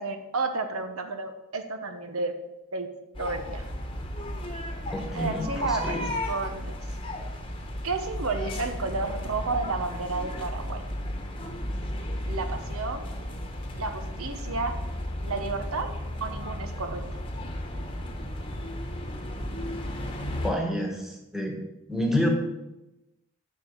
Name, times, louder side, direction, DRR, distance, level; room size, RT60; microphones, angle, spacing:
voice 1, 0.0-2.3 2.7-2.9 3.2-3.6 5.1-6.0 6.3-6.7 7.8-10.8 12.3-13.1 13.8-14.7 15.2-15.9 16.2-17.0, right 3 dB, 75° right, 7 dB, 1.0 m, -31 dB
sound 1, 3.1-20.5, left 1 dB, 25° left, 1.2 m, -34 dB
voice 2, 4.9-6.1 20.3-21.6 21.9-22.3, left 1 dB, ahead, 0 dB, 1.5 m, -29 dB
7.4 x 6.6 x 7.4 m, 0.95 s
head